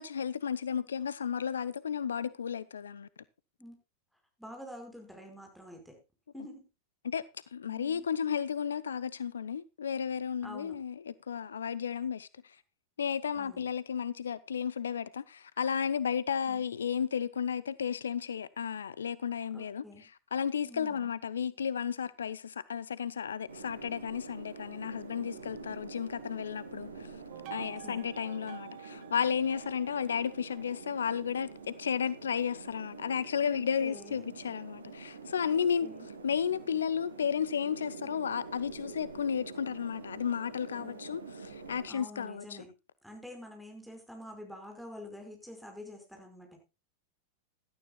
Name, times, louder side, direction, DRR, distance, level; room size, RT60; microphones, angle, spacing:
voice 1, 0.0-3.1 7.0-7.3 7.5-12.6 13.0-19.8 20.3-27.1 27.5-35.9 36.2-42.6, left 7 dB, 70° left, 0.5 m, -33 dB
voice 2, 4.4-6.0 6.3-6.7 7.7-8.1 10.4-10.8 13.3-13.6 16.5-16.6 19.5-20.1 20.6-21.1 27.6-28.1 33.4-34.4 35.5-36.1 40.8-41.0 41.9-42.7 43.0-46.6, left 1 dB, ahead, 5.2 m, -48 dB
sound 1, 23.5-41.9, right 4 dB, 75° right, 2.1 m, -47 dB
sound 2, 27.3-31.7, right 15 dB, 45° right, 1.0 m, -50 dB
17.0 x 12.5 x 2.3 m
figure-of-eight pair, 90°, 0 cm